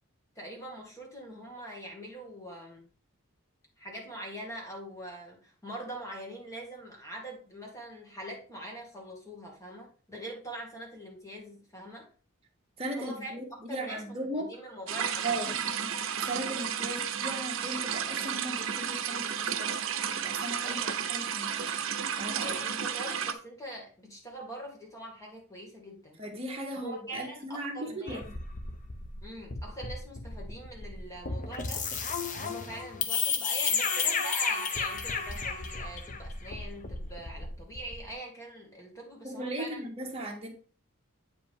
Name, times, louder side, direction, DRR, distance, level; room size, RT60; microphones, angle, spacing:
voice 1, 0.4-2.9 3.8-12.1 13.0-13.4 13.7-15.4 20.6-21.0 22.4-26.2 26.8-28.2 29.2-31.8 32.4-39.8, right 1 dB, 15° left, 2.0 m, -43 dB
voice 2, 12.8-14.6 15.2-15.6 15.9-19.8 20.1-21.8 22.2-22.5 26.2-28.3 39.2-40.5, right 1 dB, 25° right, 1.8 m, -37 dB
sound 1, 14.9-23.3, right 8 dB, 65° right, 0.7 m, -32 dB
sound 2, 28.1-38.1, left 5 dB, 35° left, 0.8 m, -33 dB
8.4 x 4.9 x 3.6 m
head